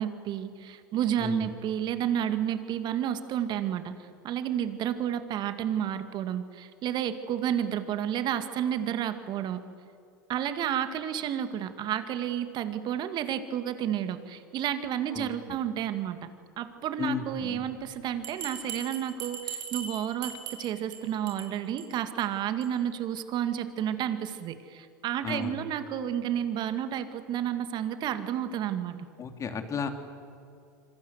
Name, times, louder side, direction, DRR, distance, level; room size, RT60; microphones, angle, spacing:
voice 1, 0.0-3.8 4.2-9.6 10.3-16.3 16.6-29.0, right 10 dB, 45° right, 10 dB, 2.2 m, -31 dB
voice 2, 1.2-1.5 15.1-15.6 17.0-17.7 25.2-25.5 29.2-29.9, left 6 dB, 30° left, 7 dB, 3.1 m, -34 dB
Bell, 18.2-21.0 21.3-21.5 21.8-21.9 22.2-22.3 22.6-22.7, right 7 dB, 70° right, 4.9 m, -38 dB
26.5 x 25.5 x 8.1 m, 2.5 s
hypercardioid pair, 90°, 11 cm